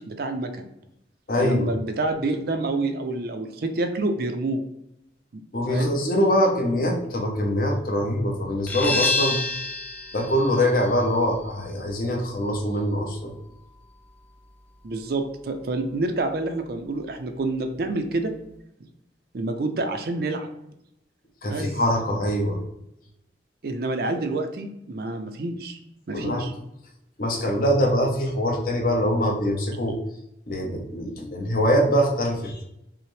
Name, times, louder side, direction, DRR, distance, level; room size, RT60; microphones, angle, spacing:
voice 1, 0.1-0.7 1.4-4.6 5.3-5.4 5.7-6.0 14.8-18.3 19.3-20.5 21.4-21.7 23.6-25.8 26.1-26.5, right 2 dB, 55° right, 6 dB, 0.4 m, -28 dB
voice 2, 1.3-1.7 5.5-9.4 10.1-13.3 21.4-22.6 26.1-26.4 27.2-30.0 30.5-32.6, equal, 50° left, 0 dB, 0.8 m, -23 dB
sound 1, 8.7-14.1, left 3 dB, 10° left, 0.3 m, -30 dB
5.6 x 2.1 x 3.1 m, 0.82 s
head